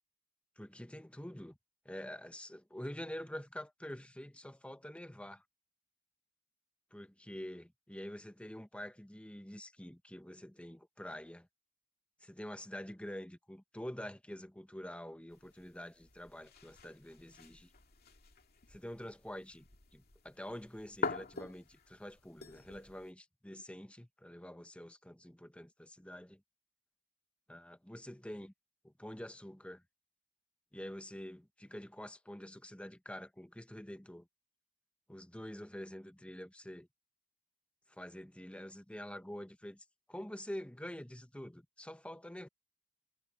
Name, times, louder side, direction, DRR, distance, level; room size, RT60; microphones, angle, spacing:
voice 1, 0.6-1.6 1.8-5.4 6.9-11.5 12.2-17.7 18.7-19.7 19.9-26.4 27.5-28.5 28.8-29.8 30.7-34.3 35.1-36.9 37.9-42.5, left 1 dB, 5° left, 1.0 m, -47 dB
sound 1, 15.3-23.1, left 4 dB, 45° left, 2.4 m, -46 dB
head